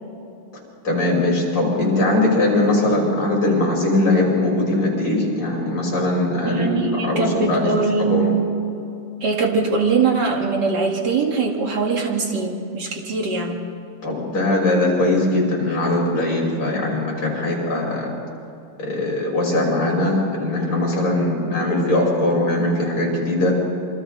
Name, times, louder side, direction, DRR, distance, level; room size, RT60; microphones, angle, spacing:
voice 1, 0.8-8.3 14.0-18.1 18.8-23.5, left 2 dB, 40° left, -3 dB, 6.5 m, -20 dB
voice 2, 6.4-8.6 9.2-13.6, right 4 dB, 35° right, 0 dB, 2.6 m, -22 dB
28.5 x 24.5 x 4.1 m, 2.7 s
omnidirectional pair, 3.5 m